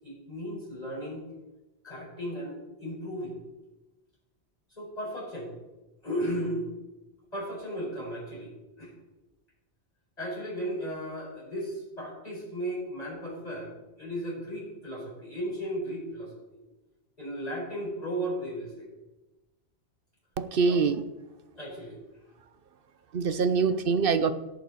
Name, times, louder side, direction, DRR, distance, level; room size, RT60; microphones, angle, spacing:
voice 1, 0.0-1.2 1.8-3.4 4.7-5.5 6.0-6.7 7.3-8.5 8.8-8.9 10.2-16.6 17.2-18.9 20.7-20.8 21.6-22.0, equal, 35° left, -4 dB, 5.2 m, -35 dB
voice 2, 20.4-21.0 23.1-24.3, right 5 dB, 60° right, 12 dB, 0.8 m, -24 dB
17.0 x 9.2 x 4.1 m, 1.1 s
omnidirectional pair, 1.1 m